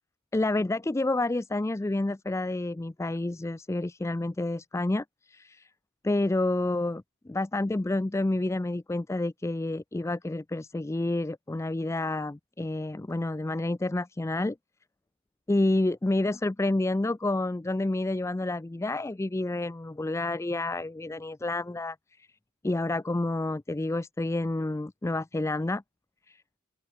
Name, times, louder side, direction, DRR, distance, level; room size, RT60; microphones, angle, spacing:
voice 1, 0.3-5.7 6.0-14.6 15.5-22.0 22.6-25.8 26.3-26.4, left 2 dB, 15° left, 0.4 m, -29 dB
open air
head